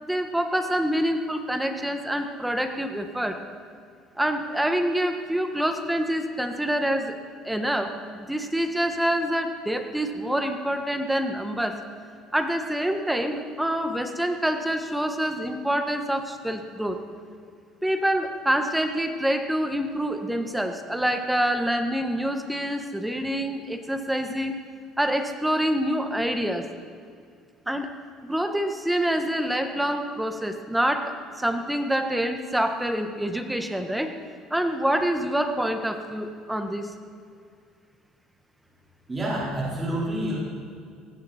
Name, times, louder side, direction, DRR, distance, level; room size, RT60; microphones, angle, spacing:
voice 1, 0.0-3.4 4.2-7.2 7.4-11.8 12.3-17.0 17.8-24.6 25.0-26.7 27.7-27.9 28.2-34.2 34.5-36.9, equal, 5° right, 6 dB, 1.6 m, -26 dB
voice 2, 39.1-40.3, right 1 dB, 25° right, -5 dB, 4.6 m, -28 dB
19.0 x 15.5 x 4.5 m, 2.3 s
supercardioid pair, 95°, 0 cm